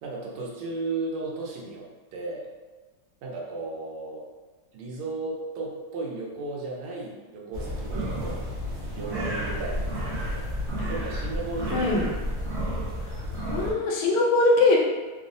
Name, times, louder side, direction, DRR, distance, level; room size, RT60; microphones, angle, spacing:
voice 1, 0.0-2.5 3.2-4.3 4.7-8.4 8.9-10.5 10.9-11.9, right 3 dB, 90° right, -2 dB, 1.5 m, -35 dB
sound 1, 7.5-13.7, equal, 70° right, 0.6 m, -31 dB
voice 2, 11.7-12.1 13.5-14.8, left 2 dB, 85° left, -2 dB, 1.5 m, -21 dB
3.8 x 2.0 x 2.5 m, 1.3 s
omnidirectional pair, 2.3 m